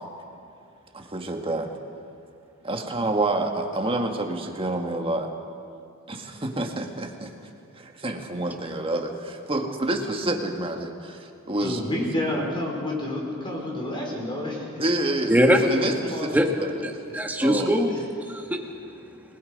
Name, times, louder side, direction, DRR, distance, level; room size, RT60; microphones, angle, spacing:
voice 1, 0.9-1.7 2.6-5.3 6.1-7.3 7.8-11.8 14.8-15.4 15.7-16.7 17.4-17.8, right 2 dB, 25° right, 3 dB, 1.8 m, -28 dB
voice 2, 11.6-14.8 15.8-16.4, left 1 dB, 25° left, -1 dB, 5.0 m, -29 dB
voice 3, 15.3-15.6 16.3-16.5 16.8-19.2, equal, 10° right, 2 dB, 1.8 m, -23 dB
29.0 x 20.0 x 5.3 m, 2.4 s
head